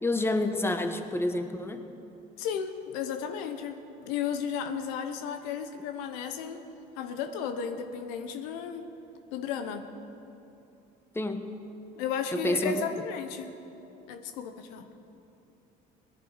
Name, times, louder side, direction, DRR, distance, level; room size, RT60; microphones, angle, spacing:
voice 1, 0.0-1.9 11.1-11.5 12.3-12.8, left 1 dB, 10° left, 7 dB, 1.1 m, -28 dB
voice 2, 2.4-6.6 7.0-8.9 9.3-9.9 12.0-13.5 14.1-14.9, left 7 dB, 90° left, 8 dB, 0.9 m, -34 dB
18.5 x 11.0 x 4.8 m, 2.9 s
supercardioid pair, 80°, 20 cm